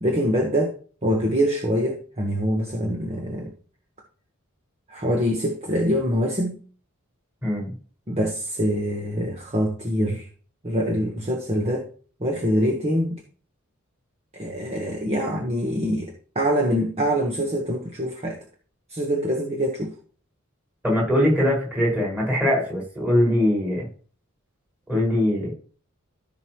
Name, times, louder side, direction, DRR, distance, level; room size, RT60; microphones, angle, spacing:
voice 1, 0.0-0.7 1.0-3.5 4.9-6.6 8.1-10.3 10.6-11.9 12.2-13.1 14.3-18.4 18.9-19.9, equal, 30° right, 1.5 m, -24 dB
voice 2, 7.4-7.7 20.8-23.9 24.9-25.5, left 1 dB, 10° right, 5.9 m, -22 dB
14.5 x 6.3 x 3.2 m
head